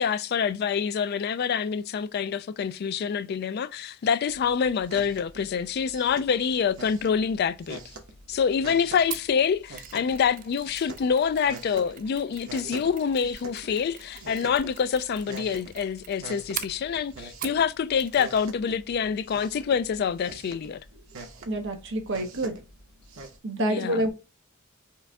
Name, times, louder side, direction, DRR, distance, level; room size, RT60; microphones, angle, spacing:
voice 1, 0.0-7.8 8.3-20.8 23.6-24.0, left 7 dB, 50° left, 0.3 m, -26 dB
sound 1, 4.3-23.4, right 2 dB, 85° right, 1.0 m, -45 dB
Mechanisms, 9.1-17.7 18.0-18.5 18.7-18.8, right 11 dB, 40° right, 0.4 m, -43 dB
voice 2, 21.5-22.6 23.4-24.1, right 1 dB, 60° right, 0.8 m, -28 dB
4.5 x 2.6 x 3.3 m
head